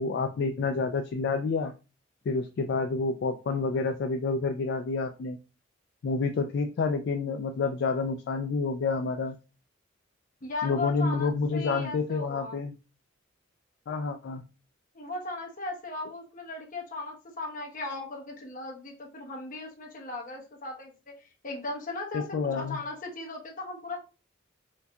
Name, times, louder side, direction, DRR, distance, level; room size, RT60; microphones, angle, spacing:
voice 1, 0.0-1.7 2.3-5.4 6.0-9.4 10.6-12.7 13.9-14.4 22.1-22.8, left 4 dB, 60° left, 7 dB, 0.3 m, -29 dB
voice 2, 10.4-12.6 14.9-24.0, left 3 dB, 45° left, -1 dB, 1.1 m, -37 dB
4.4 x 2.7 x 2.3 m, 0.32 s
head